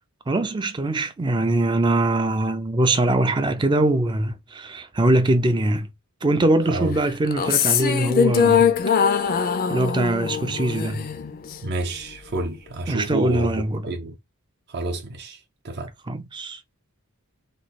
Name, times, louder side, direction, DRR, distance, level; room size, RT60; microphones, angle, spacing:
voice 1, 0.3-5.9 6.2-8.8 9.7-11.1 12.9-13.9 16.1-16.6, right 2 dB, 20° right, 0.4 m, -22 dB
sound 1, 7.2-11.7, left 7 dB, 40° left, 0.4 m, -22 dB
voice 2, 11.6-14.1 14.7-15.4 15.6-15.9, right 2 dB, 50° right, 0.7 m, -29 dB
3.1 x 2.3 x 4.0 m
head